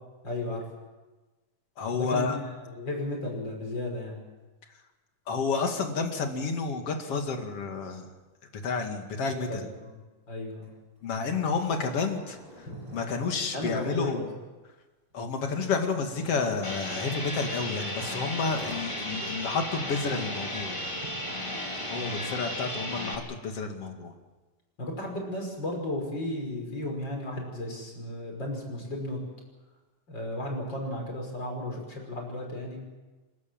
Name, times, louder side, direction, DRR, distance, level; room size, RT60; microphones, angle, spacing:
voice 1, 0.2-0.6 1.9-4.2 9.2-10.0 10.3-10.7 12.7-13.0 13.5-14.3 21.9-22.3 24.8-29.2 30.1-32.8, left 1 dB, 35° left, 0 dB, 6.2 m, -34 dB
voice 2, 1.8-2.4 5.3-8.1 8.5-9.7 11.0-12.7 12.9-14.3 15.1-20.9 21.9-24.1, left 4 dB, 55° left, 4 dB, 3.0 m, -30 dB
sound 1, 10.6-10.7 11.0-11.1 11.3-14.1 15.1-15.3 15.9-16.8 17.8-18.9 19.3-19.5 19.8-22.0, equal, 40° right, 8.7 m, -49 dB
sound 2, 16.6-23.2, left 1 dB, 10° left, 2.6 m, -35 dB
29.0 x 12.5 x 8.9 m, 1.2 s
omnidirectional pair, 3.3 m